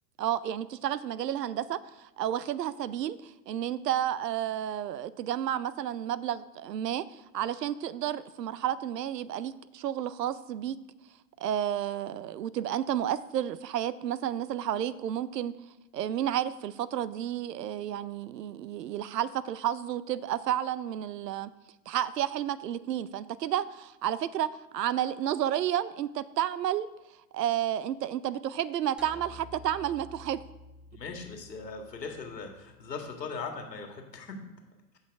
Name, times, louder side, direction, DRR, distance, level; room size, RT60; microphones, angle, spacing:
voice 1, 0.2-10.8 11.4-15.6 15.9-21.5 21.9-26.9 27.3-30.4, right 11 dB, 80° right, 18 dB, 0.7 m, -31 dB
sound 1, 29.0-33.4, left 1 dB, ahead, 0.4 m, -52 dB
voice 2, 30.9-34.3, left 4 dB, 85° left, 3 dB, 2.0 m, -39 dB
15.0 x 5.6 x 3.6 m, 1.0 s
hypercardioid pair, 105°, 48 cm